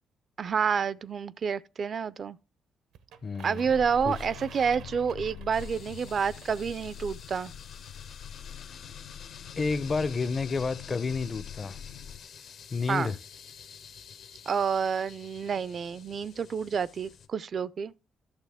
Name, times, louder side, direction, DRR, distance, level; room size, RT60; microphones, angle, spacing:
voice 1, 0.4-2.4 3.4-7.5 12.9-13.1 14.5-17.9, right 6 dB, 50° right, 0.3 m, -29 dB
sound 1, 2.9-7.0, right 9 dB, 90° right, 0.8 m, -52 dB
voice 2, 3.2-3.7 4.1-4.2 9.6-11.8 12.7-13.2, left 4 dB, 35° left, 0.5 m, -30 dB
sound 2, 3.6-12.2, left 9 dB, 85° left, 0.6 m, -44 dB
sound 3, 5.5-17.3, left 7 dB, 70° left, 0.9 m, -49 dB
11.5 x 6.7 x 3.5 m
cardioid pair, 90°, 0 cm